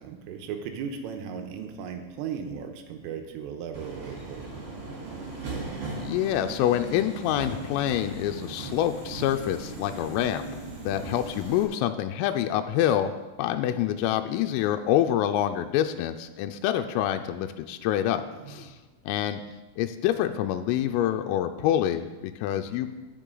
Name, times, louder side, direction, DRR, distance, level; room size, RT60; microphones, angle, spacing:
voice 1, 0.0-4.5 18.3-18.8, right 7 dB, 90° right, 5 dB, 3.6 m, -37 dB
Subway metro underground, 3.7-11.6, right 3 dB, 40° right, 3.7 m, -38 dB
voice 2, 5.9-10.6 10.9-13.1 13.4-18.7 19.1-19.4 19.8-22.9, left 11 dB, 90° left, 6 dB, 3.2 m, -26 dB
18.0 x 7.1 x 3.9 m, 1.2 s
omnidirectional pair, 5.8 m